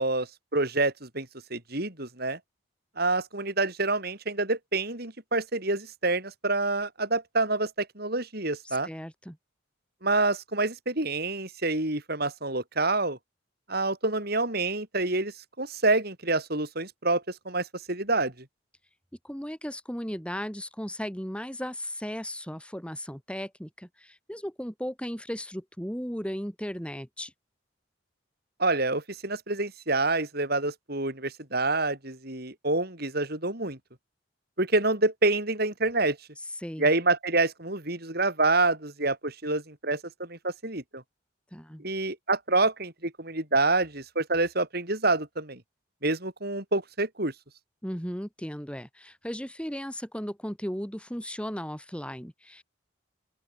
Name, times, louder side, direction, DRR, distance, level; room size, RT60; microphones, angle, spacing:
voice 1, 0.0-2.4 3.0-8.9 10.0-13.2 13.7-18.3 28.6-33.8 34.6-36.2 36.8-41.0 41.8-45.6 46.0-47.3, right 2 dB, 55° right, 6.0 m, -27 dB
voice 2, 8.6-9.4 19.2-27.3 36.6-36.9 41.5-41.9 47.8-52.6, equal, 5° left, 4.5 m, -36 dB
open air
head